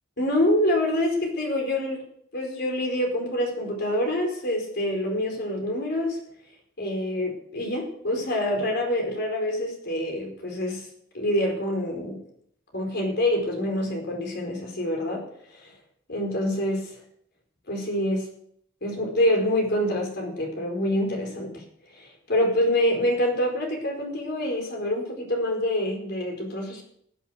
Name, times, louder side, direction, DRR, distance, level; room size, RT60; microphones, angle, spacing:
voice 1, 0.2-2.0 2.3-6.2 6.8-10.9 11.1-12.2 12.7-15.2 15.5-15.7 16.1-17.0 17.7-18.3 18.8-21.6 21.9-26.8, left 1 dB, 55° left, 2 dB, 4.7 m, -26 dB
16.0 x 8.7 x 6.5 m, 0.66 s
head